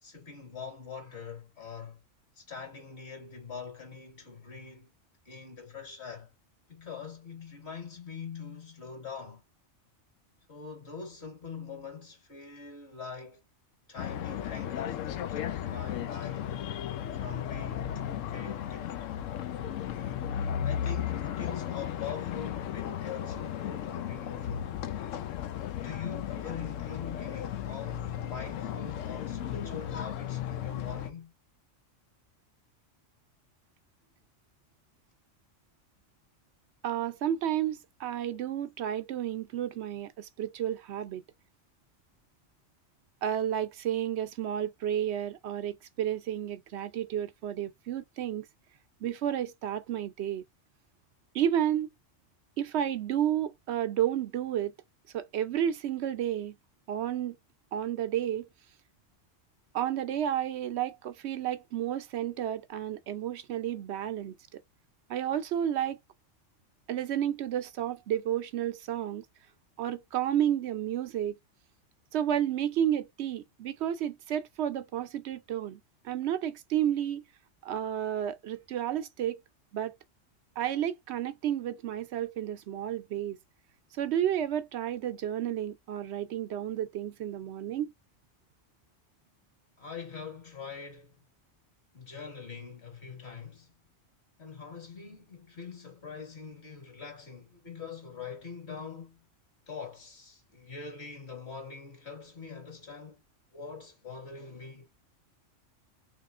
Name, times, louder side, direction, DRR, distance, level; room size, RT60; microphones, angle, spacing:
voice 1, 0.0-2.0 2.4-4.9 5.3-6.3 6.7-9.4 10.5-13.4 13.9-16.6 17.1-18.9 20.6-24.8 25.8-31.3 89.8-91.1 91.9-93.7 94.4-99.2 99.7-103.2 103.5-104.9, left 5 dB, 60° left, 2.0 m, -43 dB
sound 1, 14.0-31.1, left 10 dB, 90° left, 1.0 m, -35 dB
voice 2, 36.8-41.2 43.2-48.5 49.0-50.4 51.3-51.9 52.6-54.7 55.1-56.6 56.9-57.4 57.7-58.5 59.7-64.4 65.1-66.0 66.9-69.2 69.8-71.4 72.1-77.2 77.6-79.4 79.7-80.0 80.6-83.4 83.9-87.9, right 10 dB, 70° right, 0.8 m, -31 dB
3.5 x 3.2 x 2.5 m
omnidirectional pair, 1.3 m